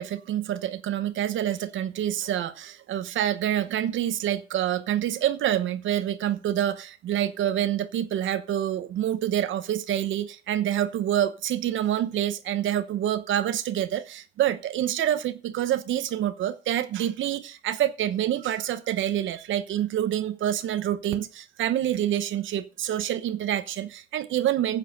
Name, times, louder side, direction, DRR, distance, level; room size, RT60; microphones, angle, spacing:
voice 1, 0.0-24.8, right 11 dB, 75° right, 1.0 m, -27 dB
9.5 x 7.5 x 6.7 m
cardioid pair, 90°, 20 cm